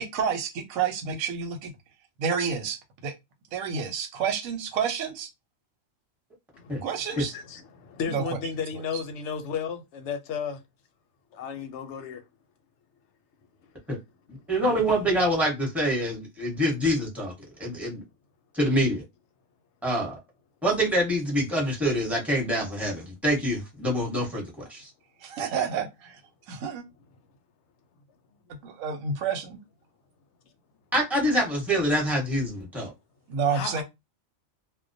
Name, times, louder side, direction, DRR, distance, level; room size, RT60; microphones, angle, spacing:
voice 1, 0.0-1.7 2.2-3.1 3.5-5.3 6.8-7.3 8.1-8.4 8.7-8.8 25.2-26.2 26.5-26.8 28.6-29.6 33.3-33.8, right 6 dB, 90° right, 1.1 m, -29 dB
voice 2, 6.5-10.6 11.3-12.2 33.5-33.8, left 6 dB, 65° left, 0.8 m, -34 dB
voice 3, 14.5-17.3 17.6-18.0 18.5-19.0 19.8-20.2 20.6-24.9 30.9-32.9, equal, ahead, 0.8 m, -25 dB
2.2 x 2.2 x 2.5 m
omnidirectional pair, 1.4 m